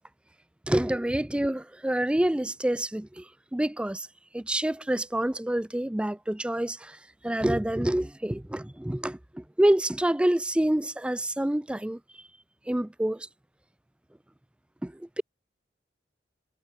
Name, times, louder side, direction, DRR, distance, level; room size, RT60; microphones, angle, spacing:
voice 1, 0.7-4.1 4.3-12.0 12.7-13.3 14.8-15.2, right 1 dB, 5° right, 0.3 m, -27 dB
head